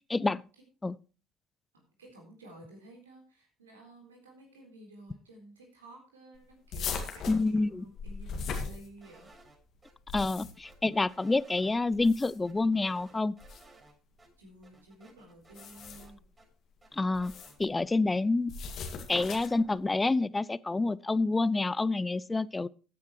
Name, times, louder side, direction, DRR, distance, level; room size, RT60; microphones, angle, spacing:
voice 1, 0.1-0.4 0.8-1.0 7.3-7.8 10.1-13.4 16.9-17.3 17.6-18.5 19.1-22.7, left 3 dB, 20° left, 0.5 m, -28 dB
voice 2, 2.0-9.3 14.4-16.2, right 1 dB, 90° right, 3.8 m, -52 dB
sound 1, 6.7-9.3 9.9-10.7 11.9-12.6 13.4-13.6 15.4-16.2 17.1-17.6 18.5-19.7, left 5 dB, 55° left, 2.2 m, -39 dB
sound 2, 9.0-9.9 10.3-11.8 12.0-12.1 12.4-13.9 14.2-14.3 14.6-16.5 16.8-17.6, right 2 dB, 25° right, 6.8 m, -58 dB
15.0 x 9.4 x 3.1 m
hypercardioid pair, 55°, 0 cm